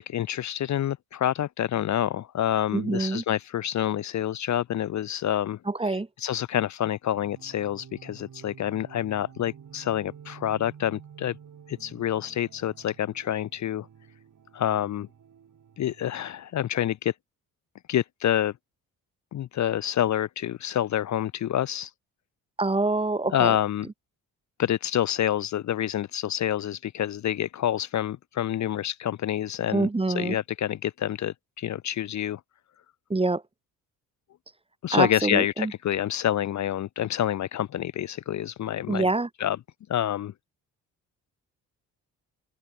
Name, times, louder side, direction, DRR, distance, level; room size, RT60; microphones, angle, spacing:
voice 1, 0.0-5.6 5.8-11.4 11.7-13.9 14.5-15.1 15.8-17.1 17.9-18.5 19.3-21.9 23.3-23.9 24.6-29.9 30.1-32.4 34.8-39.1 39.4-39.6 39.9-40.3, left 11 dB, 50° left, 0.6 m, -27 dB
voice 2, 2.7-3.2 5.7-6.1 22.6-23.6 29.7-30.4 33.1-33.4 34.9-35.7 38.9-39.3, right 2 dB, 15° right, 1.1 m, -25 dB
sound 1, 7.1-16.3, right 8 dB, 55° right, 4.5 m, -50 dB
open air
supercardioid pair, 55°, 38 cm